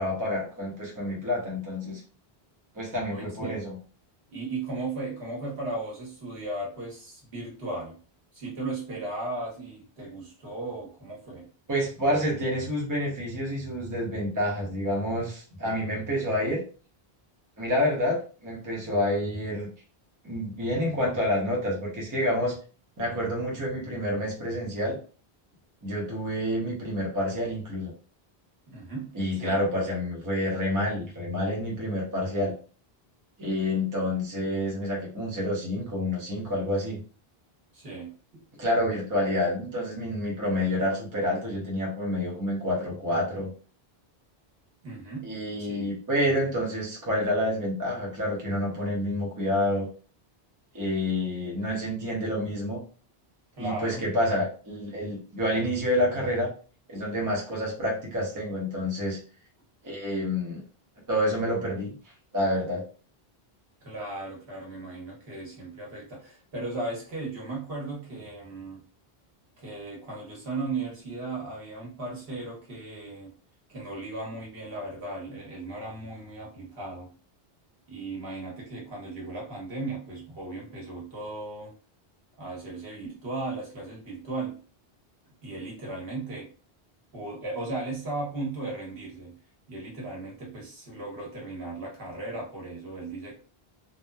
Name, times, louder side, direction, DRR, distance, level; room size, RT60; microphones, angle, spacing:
voice 1, 0.0-2.0 2.7-3.7 11.7-16.6 17.6-19.7 20.2-22.6 23.0-25.0 25.8-27.9 29.1-32.5 33.4-37.0 38.6-43.5 45.2-49.9 50.7-52.8 53.6-56.5 56.9-59.2 59.8-60.6 61.1-61.9 62.3-62.8, left 1 dB, 20° right, -3 dB, 0.7 m, -28 dB
voice 2, 2.8-3.6 4.3-8.0 8.3-11.5 28.7-29.6 37.7-38.4 44.8-45.3 45.6-45.9 53.6-54.0 63.8-68.8 69.6-73.3 73.7-77.1 77.9-81.7 82.4-84.6 85.4-86.5 87.1-89.4 89.7-93.3, right 2 dB, 70° right, -3 dB, 1.2 m, -36 dB
2.9 x 2.0 x 2.2 m, 0.38 s
omnidirectional pair, 1.0 m